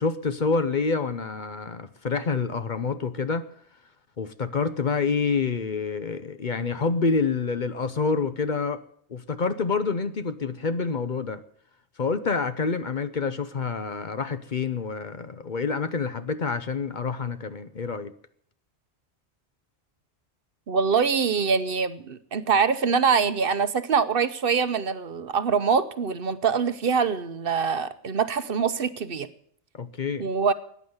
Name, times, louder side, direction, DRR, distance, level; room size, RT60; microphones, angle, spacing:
voice 1, 0.0-3.5 4.2-8.8 9.1-11.4 12.0-18.1 29.8-30.3, left 4 dB, 45° left, 11 dB, 0.9 m, -27 dB
voice 2, 20.7-29.3 30.2-30.5, right 6 dB, 60° right, 12 dB, 0.9 m, -24 dB
14.5 x 9.6 x 7.9 m, 0.63 s
omnidirectional pair, 1.2 m